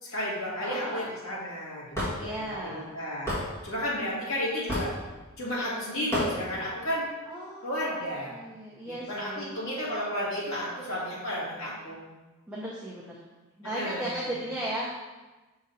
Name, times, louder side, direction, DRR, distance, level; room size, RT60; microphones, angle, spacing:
voice 1, 0.0-3.3 3.6-4.9 5.4-7.1 7.6-8.4 8.8-12.0 13.7-14.3, equal, 60° left, -6 dB, 1.9 m, -33 dB
voice 2, 0.6-1.1 2.2-2.9 3.8-4.2 7.3-8.0 8.3-9.6 12.5-13.2 13.6-14.9, right 1 dB, 5° right, -6 dB, 0.7 m, -36 dB
Hammer / Wood, 1.9-2.1 3.3-3.4 4.7-5.0 6.1-6.3, left 1 dB, 15° left, 1.5 m, -28 dB
6.2 x 3.8 x 4.2 m, 1.2 s
head